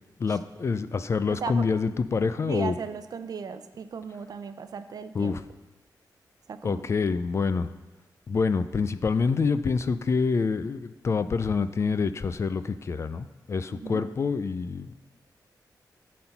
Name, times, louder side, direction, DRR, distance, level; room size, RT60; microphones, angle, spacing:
voice 1, 0.2-2.7 5.1-5.4 6.6-7.7 8.3-15.0, left 5 dB, 40° left, 12 dB, 0.3 m, -26 dB
voice 2, 1.3-1.7 2.5-5.4 6.5-6.9 13.7-14.0, right 6 dB, 60° right, 10 dB, 0.5 m, -36 dB
12.5 x 4.2 x 5.7 m, 1.1 s
wide cardioid pair, 160°, 7 cm